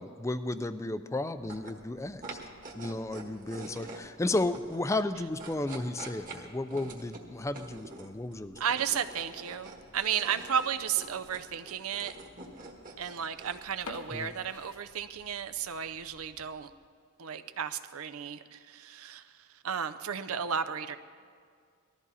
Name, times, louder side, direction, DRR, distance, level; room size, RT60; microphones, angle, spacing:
voice 1, 0.0-2.4 2.7-8.6 14.1-14.3, left 2 dB, 15° left, 11 dB, 0.4 m, -33 dB
sound 1, 1.3-16.7, right 2 dB, 40° right, 1.5 m, -48 dB
voice 2, 8.6-12.1 13.0-16.7 17.2-21.0, right 8 dB, 80° right, 11 dB, 0.7 m, -33 dB
sound 2, 13.8-15.6 16.0-16.1 16.6-16.8 17.2-17.3 17.5-17.6 18.4-18.7, left 3 dB, 85° left, 1.1 m, -47 dB
19.0 x 13.5 x 4.1 m, 2.1 s
head